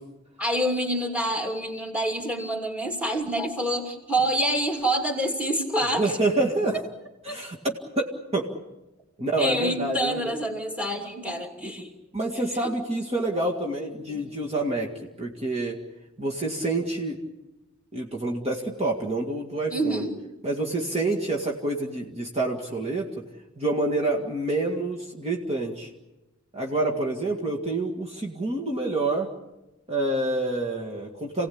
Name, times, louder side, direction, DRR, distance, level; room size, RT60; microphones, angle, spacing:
voice 1, 0.4-6.0 7.2-7.4 9.4-11.9 12.6-12.7 14.1-14.2 19.7-20.2, right 1 dB, 5° right, 2 dB, 2.9 m, -27 dB
voice 2, 6.0-6.8 7.3-8.5 9.2-10.3 11.6-11.7 12.1-15.8 16.2-17.2 17.9-20.1 20.4-23.2 23.6-25.9 26.5-29.3 29.9-31.5, right 2 dB, 30° right, -1 dB, 2.0 m, -27 dB
28.5 x 18.0 x 8.7 m, 1.0 s
head